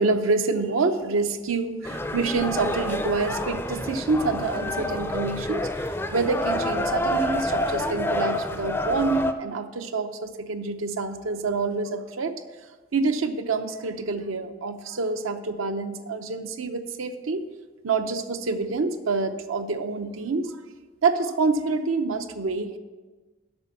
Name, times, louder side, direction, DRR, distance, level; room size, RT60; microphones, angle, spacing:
voice 1, 0.0-5.7 6.1-12.3 12.9-17.4 17.8-20.5 21.0-22.8, right 3 dB, 85° right, 8 dB, 0.7 m, -27 dB
sound 1, 1.9-9.3, left 1 dB, 10° left, 0.4 m, -28 dB
7.9 x 6.1 x 7.0 m, 1.3 s
head